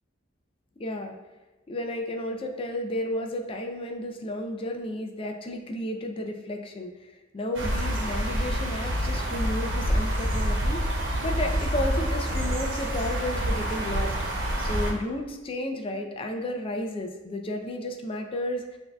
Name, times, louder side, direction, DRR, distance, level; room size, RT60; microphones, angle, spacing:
voice 1, 0.8-1.1 1.7-14.2 14.6-18.8, left 1 dB, 30° left, 4 dB, 0.4 m, -32 dB
sound 1, 7.5-14.9, equal, 75° right, 1.0 m, -27 dB
7.8 x 2.7 x 2.2 m, 1.1 s
head